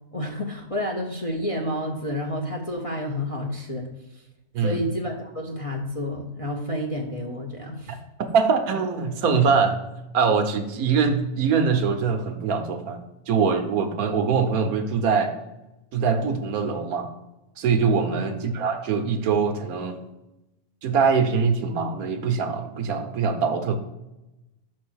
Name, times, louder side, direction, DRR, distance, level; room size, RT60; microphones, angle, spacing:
voice 1, 0.1-3.9 4.1-4.2 4.6-8.0 18.1-18.3, left 1 dB, 30° left, 1 dB, 0.7 m, -30 dB
voice 2, 8.3-9.8 10.1-13.0 13.3-15.3 15.9-17.1 17.6-20.0 20.8-23.8, right 5 dB, 75° right, 7 dB, 1.3 m, -23 dB
6.0 x 4.3 x 6.2 m, 0.98 s
omnidirectional pair, 1.6 m